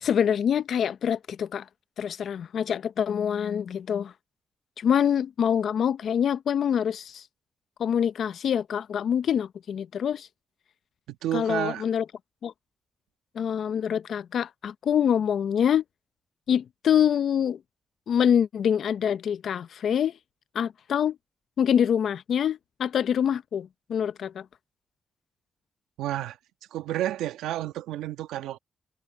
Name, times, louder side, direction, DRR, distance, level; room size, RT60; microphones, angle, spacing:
voice 1, 0.0-1.7 2.0-4.1 4.8-7.3 7.8-10.3 11.3-12.0 12.4-12.5 13.3-15.8 16.5-17.6 18.1-20.1 20.5-21.2 21.6-24.4, left 8 dB, 75° left, 0.7 m, -25 dB
voice 2, 11.1-11.8 26.0-26.4 26.7-28.6, right 13 dB, 90° right, 1.3 m, -30 dB
supercardioid pair, 40°, 0 cm